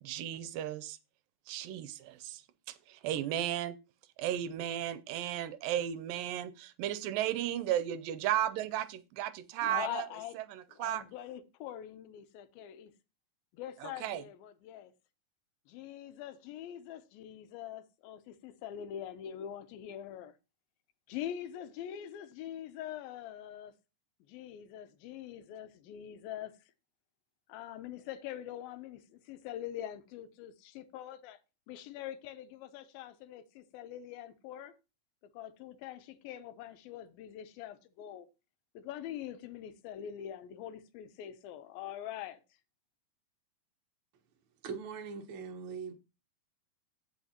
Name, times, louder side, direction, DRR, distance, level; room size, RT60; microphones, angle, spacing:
voice 1, 0.0-1.0 1.5-2.4 2.7-3.8 4.2-10.1 10.4-11.0 13.8-14.2, right 11 dB, 80° right, 2.2 m, -34 dB
voice 2, 9.6-10.4 10.7-12.9 13.5-14.9 15.7-20.3 21.1-23.7 24.3-26.5 27.5-31.4 31.7-34.7 35.3-38.3 38.7-42.4, left 11 dB, 85° left, 2.6 m, -44 dB
voice 3, 44.6-45.9, right 5 dB, 50° right, 1.5 m, -41 dB
15.5 x 5.6 x 2.9 m
omnidirectional pair, 4.1 m